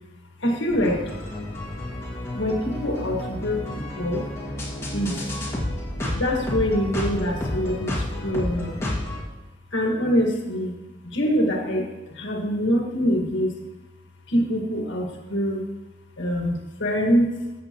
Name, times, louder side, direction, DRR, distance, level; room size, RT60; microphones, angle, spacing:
voice 1, 0.4-1.1 2.3-4.2 4.9-5.2 6.1-8.8 9.7-10.7 11.0-11.9 12.2-13.5 14.3-15.6 16.2-17.3, equal, 85° left, 1 dB, 1.7 m, -24 dB
sound 1, 0.7-9.2, left 1 dB, 15° left, 1.9 m, -31 dB
13.5 x 7.3 x 3.0 m, 1.1 s
head